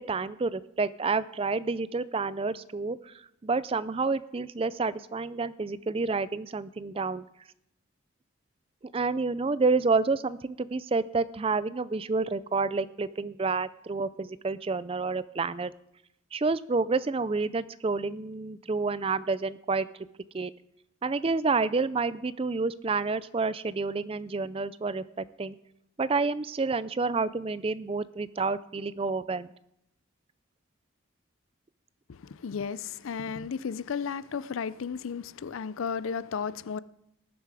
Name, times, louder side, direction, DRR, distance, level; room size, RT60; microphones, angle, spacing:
voice 1, 0.0-3.1 3.4-7.2 8.9-15.7 16.3-19.9 20.3-20.5 21.0-25.6 26.0-29.5, right 4 dB, 25° right, 0.4 m, -29 dB
voice 2, 32.1-36.8, left 6 dB, 70° left, 0.4 m, -34 dB
19.0 x 7.1 x 4.8 m
head